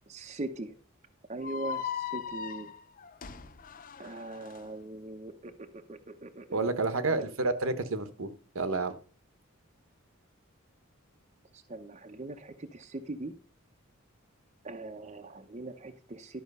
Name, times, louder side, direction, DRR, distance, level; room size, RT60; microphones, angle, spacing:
voice 1, 0.1-0.7 1.3-2.7 4.0-5.5 5.9-7.3 11.5-13.3 14.6-16.4, right 2 dB, 30° right, 6 dB, 0.8 m, -41 dB
sound 1, 1.4-4.6, left 7 dB, 40° left, 0.6 m, -39 dB
voice 2, 6.5-8.9, right 3 dB, 70° right, 11 dB, 1.1 m, -30 dB
12.0 x 5.8 x 5.4 m, 0.40 s
head